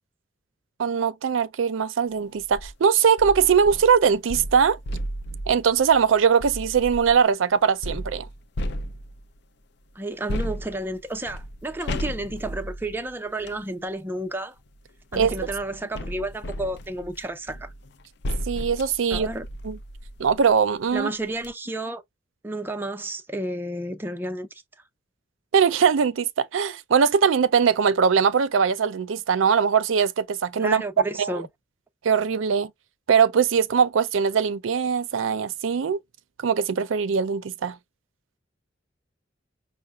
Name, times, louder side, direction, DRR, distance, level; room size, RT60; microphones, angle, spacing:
voice 1, 0.8-4.8 5.5-8.3 15.2-15.3 18.5-19.3 19.6-19.8 20.2-21.1 25.5-30.8 31.2-31.3 32.0-32.7 33.1-36.0 36.4-37.8, right 6 dB, 90° right, 0.4 m, -21 dB
sound 1, 2.4-2.7 3.2-7.2 7.8-9.4 10.3-13.6 14.6-20.5 20.9-21.0 21.3-21.5, equal, 60° left, 0.5 m, -34 dB
voice 2, 10.0-14.5 15.1-17.7 19.1-19.4 20.9-22.0 22.4-24.6 30.6-31.5, right 1 dB, 10° right, 0.5 m, -31 dB
5.6 x 2.1 x 2.3 m
head